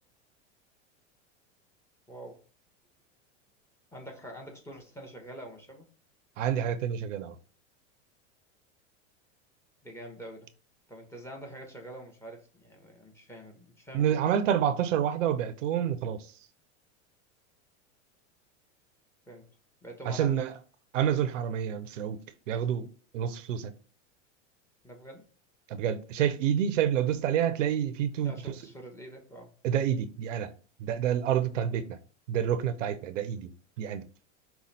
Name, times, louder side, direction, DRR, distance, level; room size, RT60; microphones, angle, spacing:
voice 1, 2.1-2.4 3.9-5.9 9.8-10.5 10.9-14.0 19.3-19.5 19.8-20.4 24.8-25.3 28.2-29.5, right 1 dB, 5° left, 1.2 m, -45 dB
voice 2, 6.4-7.3 13.9-16.3 20.1-20.5 20.9-22.2 22.5-22.9 23.1-23.7 25.7-28.3 29.6-30.5 30.8-32.0 32.3-33.5 33.8-34.0, right 9 dB, 85° right, 0.7 m, -28 dB
5.4 x 2.3 x 4.1 m
hypercardioid pair, 115°, 37 cm